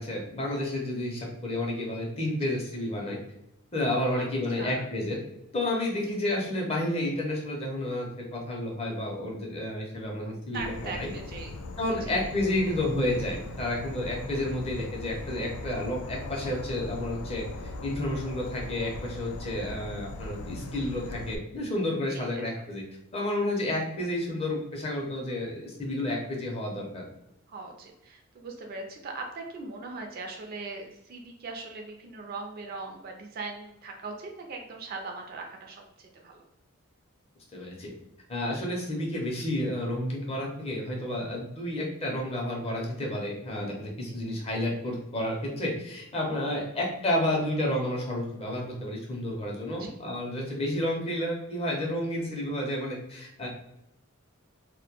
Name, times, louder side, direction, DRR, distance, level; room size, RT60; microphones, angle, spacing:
voice 1, 0.0-3.2 3.7-5.2 5.5-10.6 11.0-11.1 11.8-22.8 23.1-27.0 37.5-37.9 38.3-53.5, left 1 dB, 25° left, -2 dB, 0.5 m, -31 dB
voice 2, 4.1-4.8 9.5-9.6 10.5-11.5 12.0-12.3 19.4-19.8 22.1-22.5 26.1-26.3 27.5-36.4 44.0-44.2 46.5-46.6 49.8-49.9, right 3 dB, 45° right, 2 dB, 0.3 m, -40 dB
Insect / Frog, 10.5-21.4, left 2 dB, 80° left, 0.3 m, -40 dB
2.1 x 2.1 x 2.8 m, 0.84 s
head